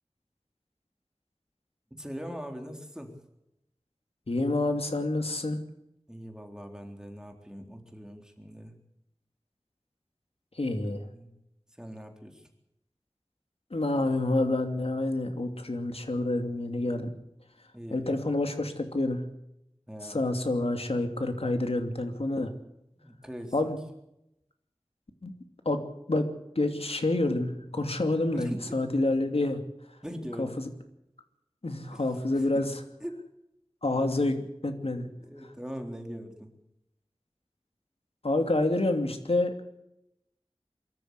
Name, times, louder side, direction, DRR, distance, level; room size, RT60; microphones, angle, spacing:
voice 1, 1.9-3.2 6.1-8.8 11.0-11.3 11.8-12.5 17.7-18.2 19.9-20.3 23.0-23.5 28.3-29.2 30.0-30.5 31.9-32.0 32.3-32.7 33.0-33.2 34.8-36.5, equal, 5° right, 4 dB, 3.9 m, -41 dB
voice 2, 4.3-5.6 10.6-11.1 13.7-17.1 17.9-19.2 20.0-22.5 23.5-23.8 25.2-25.3 25.6-25.8 26.1-26.3 26.5-29.6 30.4-30.5 31.6-32.7 33.8-35.1 38.2-39.5, left 2 dB, 70° left, 6 dB, 2.8 m, -28 dB
23.5 x 13.5 x 8.3 m, 0.85 s
wide cardioid pair, 45°, 10 cm